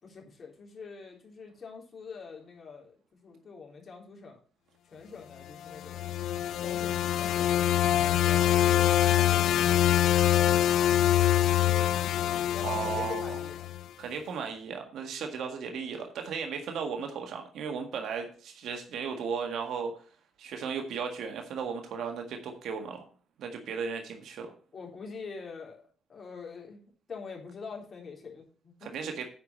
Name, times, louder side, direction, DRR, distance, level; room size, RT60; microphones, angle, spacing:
voice 1, 0.0-4.4 4.8-6.1 6.6-13.7 24.7-26.8 27.1-28.9, left 5 dB, 45° left, 0 dB, 3.6 m, -46 dB
sound 1, 5.7-13.8, left 11 dB, 80° left, 0.4 m, -25 dB
voice 2, 12.6-13.4 14.0-19.9 20.4-23.0 23.4-24.5 28.8-29.3, right 6 dB, 75° right, 4 dB, 1.7 m, -35 dB
9.5 x 4.8 x 7.4 m, 0.42 s
cardioid pair, 90°, 0 cm